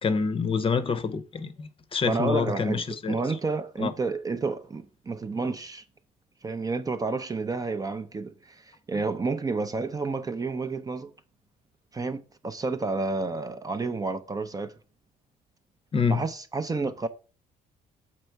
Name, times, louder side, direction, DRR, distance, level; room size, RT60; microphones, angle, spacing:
voice 1, 0.0-3.2 3.8-3.9 15.9-16.2, left 5 dB, 30° left, 0.7 m, -27 dB
voice 2, 2.0-5.8 6.4-11.1 11.9-14.7 16.1-17.1, right 3 dB, 20° right, 0.5 m, -30 dB
6.7 x 4.2 x 4.5 m
cardioid pair, 110°, 17 cm